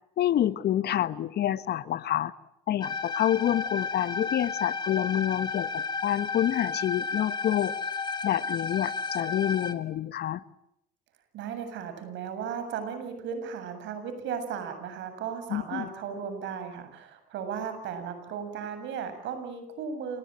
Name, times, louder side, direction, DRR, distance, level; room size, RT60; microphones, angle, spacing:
voice 1, 0.2-2.3 2.7-7.7 8.2-10.4 15.5-15.9, left 11 dB, 55° left, 15 dB, 1.3 m, -28 dB
sound 1, 2.8-9.7, left 4 dB, 20° left, 2.6 m, -32 dB
voice 2, 11.3-20.2, right 7 dB, 70° right, 9 dB, 7.5 m, -36 dB
28.5 x 21.5 x 9.0 m, 0.79 s
supercardioid pair, 85°, 20 cm